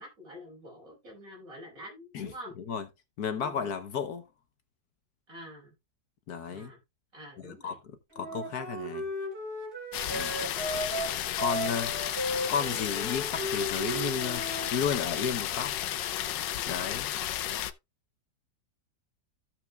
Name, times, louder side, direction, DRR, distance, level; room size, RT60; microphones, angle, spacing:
voice 1, 0.0-2.5 3.3-3.7 5.3-5.7 6.5-6.8 7.1-7.8 8.2-8.5 10.4-10.9, equal, 50° right, 5.7 m, -47 dB
voice 2, 3.2-4.2 6.3-6.7 7.4-7.8 8.2-9.0 10.1-10.3 11.4-11.9 12.5-15.7 16.7-17.1, left 6 dB, 65° left, 1.4 m, -33 dB
Wind instrument woodwind instrument, 8.1-14.7, equal, 15° right, 4.4 m, -35 dB
sound 1, 9.9-17.7, left 11 dB, 85° left, 1.4 m, -33 dB
15.0 x 5.9 x 2.3 m
omnidirectional pair, 1.9 m